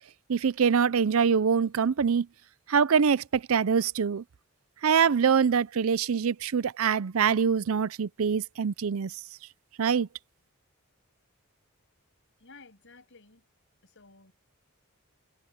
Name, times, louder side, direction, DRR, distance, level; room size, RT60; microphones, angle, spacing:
voice 1, 0.3-2.3 2.7-4.2 4.8-9.1 9.8-10.1, right 6 dB, 65° right, 0.5 m, -24 dB
voice 2, 12.4-13.4 13.8-14.3, left 3 dB, 60° left, 6.8 m, -54 dB
head